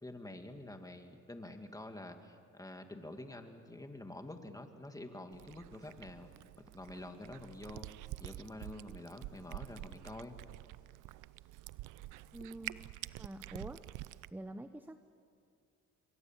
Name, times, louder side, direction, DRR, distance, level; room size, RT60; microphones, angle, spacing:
voice 1, 0.0-6.3 6.7-7.9 8.2-10.4, left 1 dB, 10° left, 5 dB, 2.3 m, -48 dB
Cat, 5.3-14.3, right 17 dB, 90° right, 0.5 m, -48 dB
voice 2, 12.3-12.8 13.2-13.8 14.3-15.0, right 1 dB, 5° right, 9 dB, 0.9 m, -46 dB
27.5 x 22.5 x 7.6 m, 2.4 s
cardioid pair, 90°, 30 cm